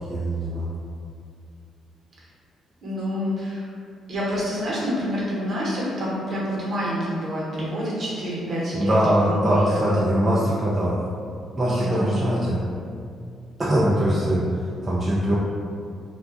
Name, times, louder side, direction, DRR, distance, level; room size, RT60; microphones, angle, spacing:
voice 1, 0.1-0.7 8.7-11.0 11.6-12.6 13.6-15.3, right 1 dB, 25° right, -7 dB, 0.4 m, -22 dB
voice 2, 2.8-3.7 4.1-10.0 11.7-12.3, equal, 50° right, -6 dB, 1.0 m, -28 dB
2.3 x 2.3 x 3.8 m, 2.3 s
cardioid pair, 90°, 0 cm